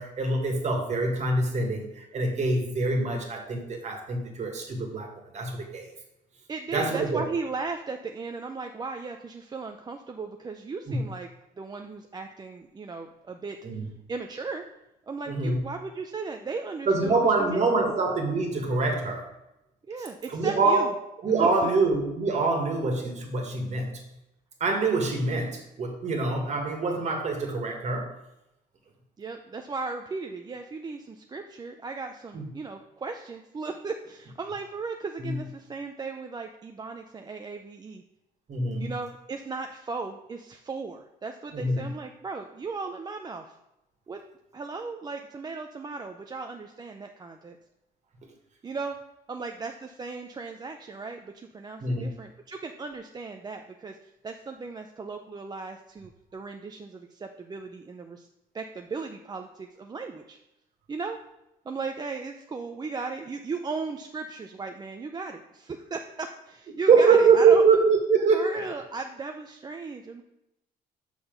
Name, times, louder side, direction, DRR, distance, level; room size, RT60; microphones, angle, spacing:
voice 1, 0.0-5.9 6.7-7.2 10.9-11.0 13.6-13.8 15.3-15.6 16.9-19.3 20.3-20.9 21.2-24.0 24.6-28.1 32.3-32.5 35.2-35.4 38.5-38.9 41.5-41.9 51.8-52.1 66.9-68.5, right 4 dB, 45° right, 3 dB, 1.7 m, -24 dB
voice 2, 6.5-11.3 11.6-13.6 14.1-14.6 15.1-18.0 19.9-20.9 21.4-21.7 29.2-38.0 38.8-43.6 44.1-44.2 44.5-47.6 48.6-49.0 49.3-58.3 58.5-60.4 60.9-61.2 61.6-67.6 68.3-70.2, right 4 dB, 25° right, 4 dB, 0.5 m, -36 dB
6.1 x 5.9 x 5.2 m, 0.89 s
cardioid pair, 110°, 17 cm